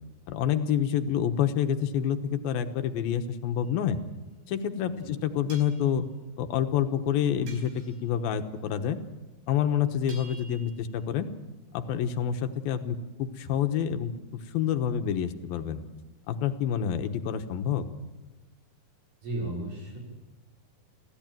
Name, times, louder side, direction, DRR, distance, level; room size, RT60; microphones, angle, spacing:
voice 1, 0.3-4.0 4.5-6.1 6.4-9.0 9.5-11.3 11.7-15.8 16.3-17.9, left 9 dB, 85° left, 7 dB, 3.0 m, -28 dB
sound 1, 3.6-3.8 5.5-5.9 7.5-8.1 10.1-11.0, right 3 dB, 75° right, 6.7 m, -50 dB
voice 2, 4.8-5.1 19.2-20.0, right 1 dB, 60° right, -2 dB, 7.8 m, -35 dB
26.0 x 16.0 x 9.1 m, 1.2 s
omnidirectional pair, 4.2 m